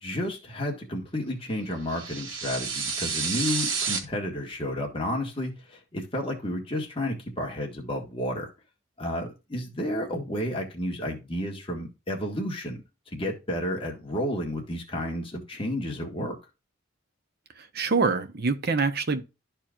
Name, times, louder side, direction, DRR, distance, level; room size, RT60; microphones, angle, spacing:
voice 1, 0.0-8.5 9.0-12.8 13.1-16.3, left 1 dB, 25° left, 1.7 m, -31 dB
sound 1, 1.9-4.0, right 5 dB, 65° right, 1.3 m, -30 dB
voice 2, 17.7-19.2, right 4 dB, 50° right, 0.9 m, -25 dB
12.0 x 4.5 x 2.5 m
head